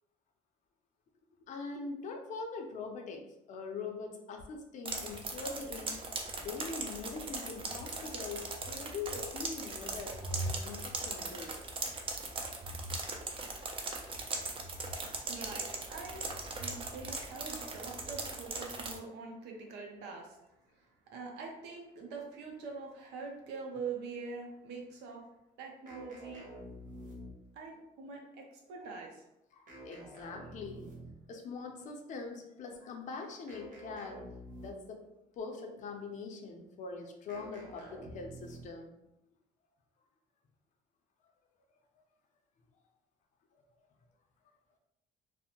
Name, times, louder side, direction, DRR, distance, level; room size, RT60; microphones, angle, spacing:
voice 1, 1.4-6.0 6.4-11.6 29.5-30.9 31.3-34.2 34.6-35.1 35.4-39.0, left 4 dB, 45° left, 3 dB, 0.5 m, -43 dB
sound 1, 4.9-19.0, right 3 dB, 30° right, 0.4 m, -39 dB
voice 2, 15.1-20.4 20.7-25.2 25.6-26.5 27.5-29.2, right 4 dB, 90° right, 1 dB, 0.6 m, -44 dB
sound 2, 25.8-27.6 29.7-31.3 33.5-35.0 37.3-38.9, right 1 dB, 50° right, 0.8 m, -49 dB
2.5 x 2.1 x 2.8 m, 0.86 s
cardioid pair, 110°, 17 cm